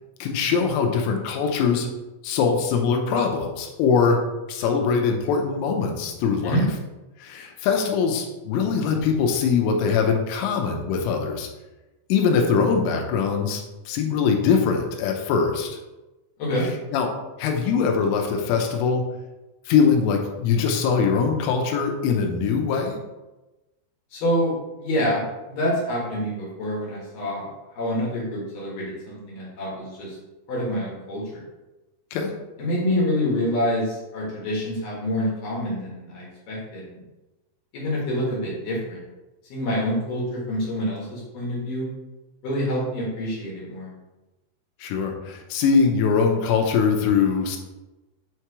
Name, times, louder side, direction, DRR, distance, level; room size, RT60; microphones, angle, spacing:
voice 1, 0.2-1.9 2.2-4.2 4.5-6.7 7.2-11.5 12.1-15.8 16.6-17.1 17.4-19.0 19.7-23.0 32.1-32.3 44.8-47.6, left 5 dB, 90° left, 3 dB, 3.4 m, -22 dB
voice 2, 24.1-24.5 24.8-30.2 30.5-31.4 32.6-37.0 37.7-39.0 39.5-41.9 42.4-43.9, equal, 65° left, -4 dB, 2.3 m, -27 dB
7.5 x 3.0 x 4.7 m, 1.1 s
omnidirectional pair, 5.7 m